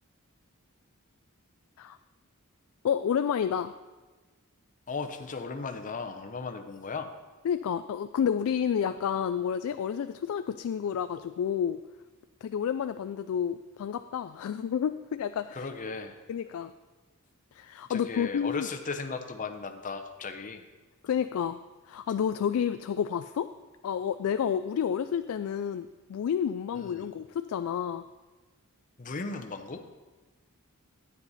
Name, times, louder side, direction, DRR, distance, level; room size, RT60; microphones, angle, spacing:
voice 1, 2.8-3.7 7.4-11.8 12.4-15.7 16.3-16.7 17.5-18.7 21.0-21.6 21.9-23.5 23.8-28.0, left 8 dB, 65° left, 10 dB, 0.3 m, -30 dB
voice 2, 4.9-7.1 15.5-16.2 17.9-20.6 26.7-27.1 29.0-29.8, left 4 dB, 35° left, 6 dB, 0.7 m, -36 dB
9.8 x 9.4 x 4.1 m, 1.3 s
head